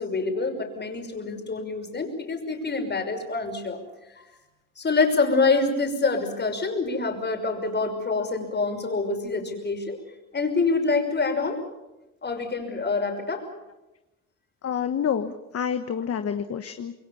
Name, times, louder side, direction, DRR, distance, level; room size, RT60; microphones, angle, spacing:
voice 1, 0.0-3.8 4.8-10.0 10.3-11.6 12.2-13.4, left 3 dB, 35° left, 5 dB, 5.8 m, -26 dB
voice 2, 14.6-16.9, left 8 dB, 50° left, 8 dB, 1.4 m, -28 dB
27.0 x 22.0 x 7.2 m, 1.0 s
cardioid pair, 90°, 30 cm